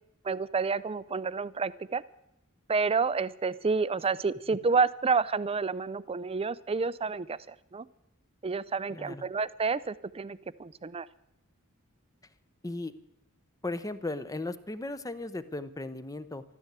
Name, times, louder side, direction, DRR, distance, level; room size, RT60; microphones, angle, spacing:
voice 1, 0.2-2.0 2.7-7.9 8.4-11.1, right 4 dB, 25° right, 17 dB, 0.5 m, -29 dB
voice 2, 8.9-9.2 12.6-12.9 13.6-16.4, left 2 dB, 15° left, 13 dB, 0.8 m, -36 dB
13.5 x 13.0 x 8.1 m, 0.85 s
head